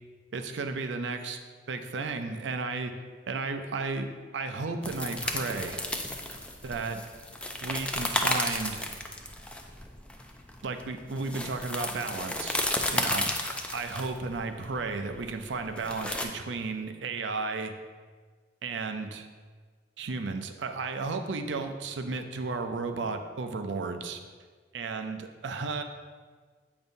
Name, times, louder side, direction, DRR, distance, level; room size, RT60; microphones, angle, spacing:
voice 1, 0.3-1.4 1.7-2.9 3.3-4.1 4.3-5.8 6.6-7.0 7.6-8.9 10.6-12.6 12.9-13.3 13.7-17.7 18.6-19.3 20.0-24.2 24.7-25.8, right 4 dB, 75° right, 7 dB, 0.5 m, -33 dB
sound 1, 4.8-16.2, left 1 dB, 5° left, 0.4 m, -33 dB
7.8 x 5.2 x 2.7 m, 1.5 s
head